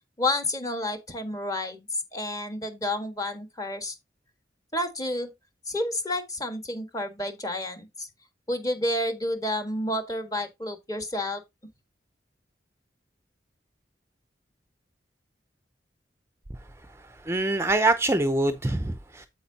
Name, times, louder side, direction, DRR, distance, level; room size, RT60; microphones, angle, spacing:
voice 1, 0.2-4.0 4.7-5.3 5.7-8.1 8.5-11.4, left 1 dB, 20° left, 1.6 m, -30 dB
voice 2, 17.2-19.3, right 2 dB, 15° right, 0.6 m, -24 dB
8.6 x 7.9 x 2.8 m
head